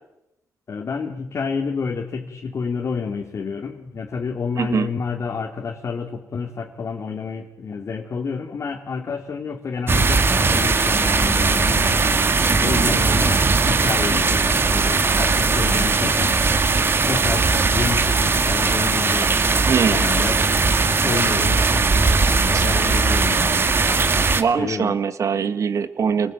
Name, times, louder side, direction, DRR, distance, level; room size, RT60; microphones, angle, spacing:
voice 1, 0.7-12.2 12.6-16.4 17.1-19.3 19.9-20.4 21.0-23.6 24.6-25.0, left 5 dB, 55° left, 1 dB, 2.5 m, -29 dB
voice 2, 4.6-4.9 19.2-19.3 19.7-20.0 21.2-21.3 22.5-22.7 24.3-26.3, right 6 dB, 60° right, 12 dB, 1.8 m, -22 dB
sound 1, 9.9-24.4, right 4 dB, 40° right, 2.0 m, -19 dB
27.5 x 19.0 x 9.1 m, 0.91 s
cardioid pair, 85°, 6 cm